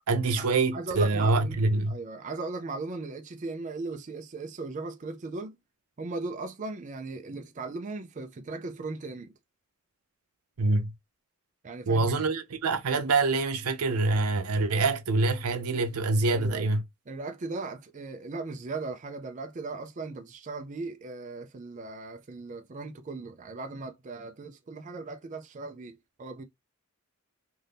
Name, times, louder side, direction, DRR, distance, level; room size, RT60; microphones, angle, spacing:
voice 1, 0.1-1.9 10.6-10.9 11.9-16.8, right 3 dB, 85° right, 0.6 m, -25 dB
voice 2, 0.7-5.6 6.0-9.3 11.6-12.3 16.3-16.7 17.1-26.4, right 3 dB, 35° right, 0.4 m, -38 dB
2.7 x 2.6 x 3.3 m
head